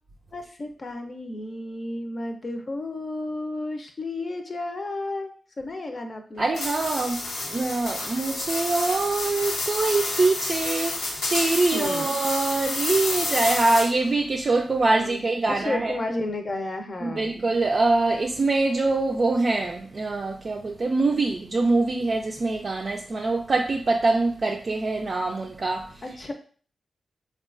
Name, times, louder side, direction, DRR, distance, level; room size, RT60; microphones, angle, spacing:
voice 1, 0.3-5.3 5.6-6.5 11.7-12.1 15.0-15.2 15.6-17.3 26.0-26.3, left 2 dB, 50° left, 0.6 m, -32 dB
voice 2, 6.4-16.0 17.0-26.0, right 3 dB, 50° right, 0.3 m, -24 dB
sound 1, 6.5-14.1, left 2 dB, 90° left, 0.6 m, -29 dB
3.7 x 2.3 x 2.4 m
cardioid pair, 45°, 0 cm